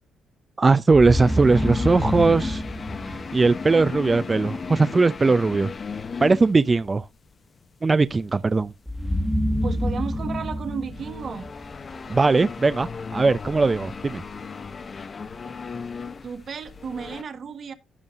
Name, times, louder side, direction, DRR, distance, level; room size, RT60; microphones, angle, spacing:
voice 1, 0.6-2.6 3.1-5.7 6.2-7.1 7.8-8.7 12.1-14.2, right 3 dB, 25° right, 0.5 m, -19 dB
sound 1, 0.9-3.9 8.9-12.1, equal, 5° left, 1.3 m, -28 dB
sound 2, 1.1-7.2 8.0-17.2, left 5 dB, 40° left, 0.8 m, -35 dB
voice 2, 9.6-11.5 16.2-17.7, right 6 dB, 50° right, 1.3 m, -33 dB
16.0 x 5.5 x 2.5 m
cardioid pair, 90°, 0 cm